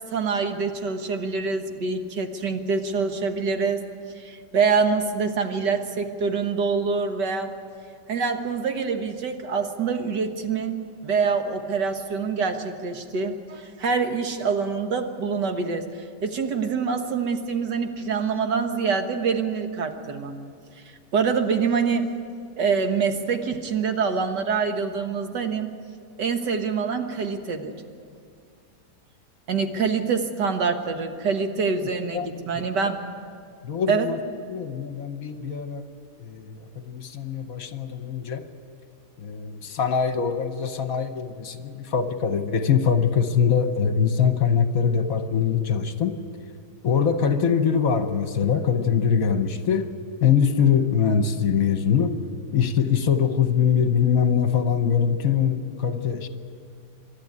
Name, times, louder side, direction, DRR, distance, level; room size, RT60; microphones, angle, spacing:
voice 1, 0.1-3.8 4.2-7.5 8.1-15.8 16.2-20.4 21.1-22.1 22.6-25.7 26.2-27.7 29.5-33.0 33.9-34.1, right 5 dB, 90° right, 6 dB, 2.0 m, -25 dB
voice 2, 33.6-34.2 34.5-35.8 36.2-38.4 39.2-46.2 46.8-49.9 50.2-52.2 52.5-56.3, left 7 dB, 60° left, 8 dB, 1.4 m, -23 dB
26.0 x 12.5 x 9.6 m, 2.3 s
omnidirectional pair, 1.8 m